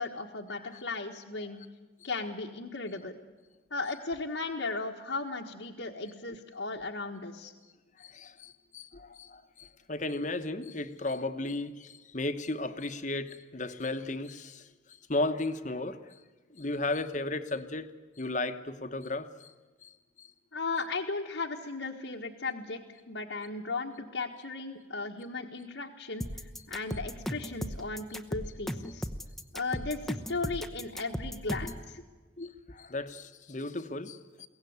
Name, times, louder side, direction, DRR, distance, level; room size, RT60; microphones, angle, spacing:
voice 1, 0.0-1.6 2.0-3.2 3.7-7.5 20.5-29.1 29.5-31.7, left 3 dB, 75° left, -1 dB, 1.6 m, -36 dB
voice 2, 8.0-16.2 16.5-17.9 18.2-19.5 19.8-20.3 31.6-31.7 32.4-34.5, left 2 dB, 40° left, 10 dB, 1.2 m, -35 dB
sound 1, 26.2-31.8, equal, ahead, 0.9 m, -36 dB
23.0 x 17.5 x 9.6 m, 1.3 s
head